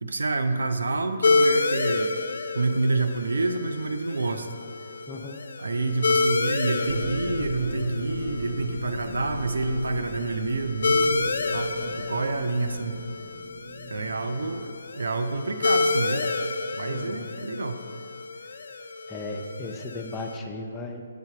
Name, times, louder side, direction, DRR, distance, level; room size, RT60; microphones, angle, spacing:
voice 1, 0.0-2.1 2.5-4.5 5.6-13.0 13.9-16.3 16.8-17.8, right 3 dB, 80° right, 8 dB, 0.4 m, -28 dB
sound 1, 1.2-20.4, left 3 dB, 70° left, 0.3 m, -29 dB
voice 2, 5.1-5.4 16.9-17.3 19.1-21.0, left 2 dB, 10° left, 1 dB, 0.6 m, -36 dB
sound 2, 6.8-14.5, equal, 45° right, 1.2 m, -37 dB
7.9 x 3.3 x 5.7 m, 2.3 s
hypercardioid pair, 145°, 0 cm